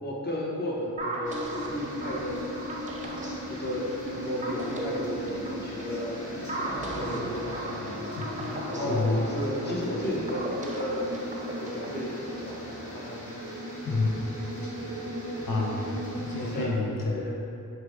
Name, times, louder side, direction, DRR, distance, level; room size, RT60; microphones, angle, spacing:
voice 1, 0.0-2.5 3.0-6.3 6.6-8.3 8.7-11.1 11.6-13.4 16.4-17.4, left 1 dB, 30° left, -4 dB, 1.0 m, -34 dB
sound 1, 1.0-12.0, right 2 dB, 20° right, 0.7 m, -37 dB
sound 2, 1.2-16.7, equal, 60° left, 1.3 m, -44 dB
sound 3, 1.2-16.6, equal, 75° right, 0.7 m, -38 dB
voice 2, 8.2-9.3 13.8-14.1 15.5-15.9 16.2-17.4, left 3 dB, 80° left, -3 dB, 0.6 m, -29 dB
4.9 x 2.2 x 4.6 m, 2.5 s
cardioid pair, 40°, 33 cm